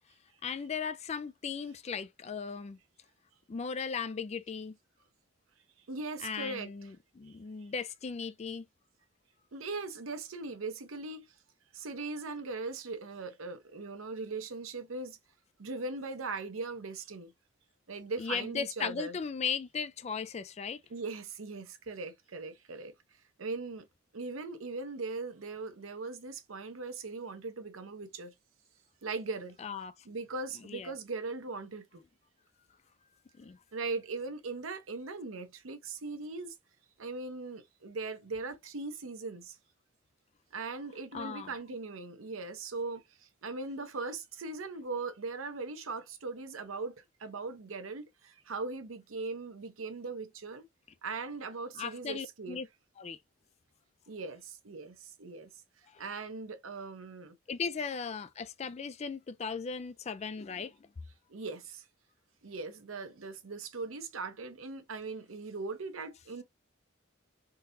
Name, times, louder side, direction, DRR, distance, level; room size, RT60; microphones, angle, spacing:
voice 1, 0.4-2.8 3.5-4.8 6.2-8.6 18.2-20.8 29.6-29.9 30.7-30.9 33.4-33.6 41.1-41.5 51.8-52.7 53.0-53.2 57.5-60.7, left 6 dB, 30° left, 0.3 m, -37 dB
voice 2, 5.9-6.9 7.3-7.4 9.5-11.3 11.7-15.2 15.6-17.3 17.9-19.2 20.9-22.9 23.4-23.9 24.1-28.3 29.0-29.6 30.0-32.0 33.7-36.5 37.0-39.6 40.5-50.6 51.0-52.6 54.1-55.5 56.0-57.4 61.3-61.9 62.4-66.4, right 3 dB, 85° right, 0.7 m, -39 dB
3.8 x 2.8 x 2.5 m
head